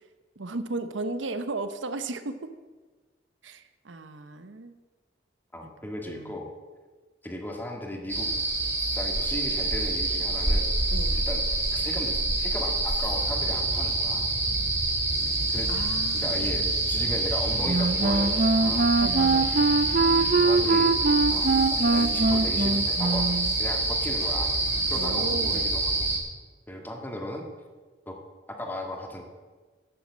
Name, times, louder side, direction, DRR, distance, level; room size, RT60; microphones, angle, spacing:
voice 1, 0.4-2.4 3.4-4.8 5.6-5.7 6.1-6.4 10.9-11.2 15.7-16.7 19.0-19.5 25.0-25.7, right 3 dB, 90° right, 10 dB, 0.9 m, -35 dB
voice 2, 5.5-6.5 7.2-8.3 8.9-10.7 11.1-14.3 15.5-15.7 16.1-18.9 20.4-20.9 21.3-24.5 24.9-26.1 26.7-27.5 28.0-28.2 28.6-29.2, left 1 dB, 10° left, 2 dB, 1.8 m, -36 dB
sound 1, 8.1-26.2, right 2 dB, 15° right, 2.9 m, -26 dB
sound 2, 15.1-25.6, left 1 dB, 60° left, 3.0 m, -46 dB
Wind instrument woodwind instrument, 17.6-23.5, right 3 dB, 45° right, 0.6 m, -23 dB
11.0 x 9.5 x 7.3 m, 1.4 s
head